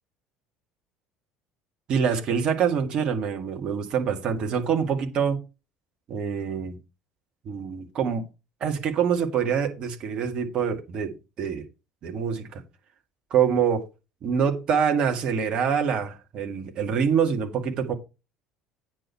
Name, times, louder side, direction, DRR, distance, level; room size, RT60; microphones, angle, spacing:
voice 1, 1.9-5.4 6.1-6.8 7.5-8.2 8.6-11.6 12.0-12.6 13.3-13.8 14.2-17.9, right 7 dB, 45° right, 2.0 m, -25 dB
9.0 x 6.2 x 4.6 m
figure-of-eight pair, 60°, 2 cm